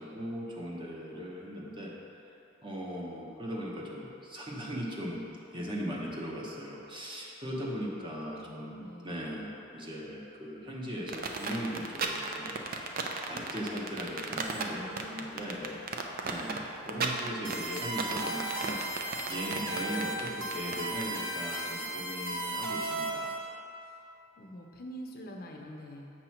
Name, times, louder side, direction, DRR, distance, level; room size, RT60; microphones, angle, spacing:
voice 1, 0.0-1.9 2.2-2.3 2.6-5.2 5.5-15.8 16.2-23.4, equal, 25° right, -3 dB, 0.8 m, -39 dB
voice 2, 8.4-9.3 14.7-15.7 19.3-19.8 24.4-26.1, equal, 50° left, 0 dB, 0.6 m, -45 dB
sound 1, 11.1-21.1, right 4 dB, 50° right, 0.5 m, -35 dB
sound 2, 17.4-23.4, right 2 dB, 80° right, 0.8 m, -35 dB
7.3 x 2.9 x 5.7 m, 2.8 s
head